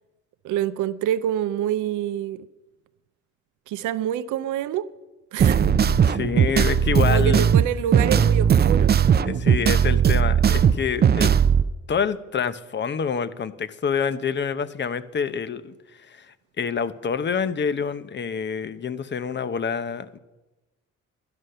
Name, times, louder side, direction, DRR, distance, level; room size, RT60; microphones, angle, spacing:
voice 1, 0.4-2.4 3.7-4.9 5.3-5.7 7.1-8.9, right 10 dB, 85° right, 0.6 m, -26 dB
sound 1, 5.4-11.6, right 8 dB, 35° right, 0.5 m, -18 dB
voice 2, 5.8-7.5 9.2-11.3 11.9-20.2, left 6 dB, 35° left, 0.8 m, -27 dB
11.5 x 11.0 x 6.6 m
cardioid pair, 90°, 30 cm